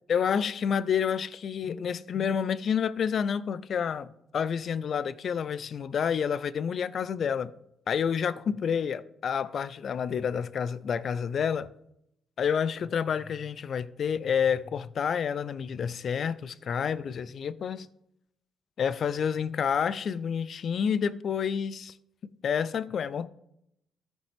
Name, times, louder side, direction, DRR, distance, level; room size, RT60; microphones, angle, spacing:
voice 1, 0.1-7.5 7.9-11.7 12.4-17.9 18.8-21.9 22.4-23.3, left 7 dB, 55° left, 0.4 m, -29 dB
14.0 x 5.2 x 3.4 m
cardioid pair, 90°, 0 cm